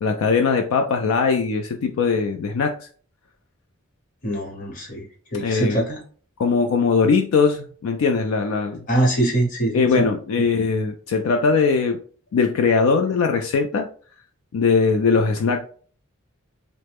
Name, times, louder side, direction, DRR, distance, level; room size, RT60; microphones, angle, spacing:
voice 1, 0.0-2.9 5.4-5.8 6.4-8.9 9.7-12.0 12.3-13.9 14.5-15.7, left 5 dB, 70° left, 5 dB, 0.3 m, -20 dB
voice 2, 4.2-6.0 8.9-10.1 10.4-10.5, right 1 dB, 35° left, -2 dB, 0.9 m, -23 dB
3.1 x 2.0 x 3.4 m, 0.43 s
head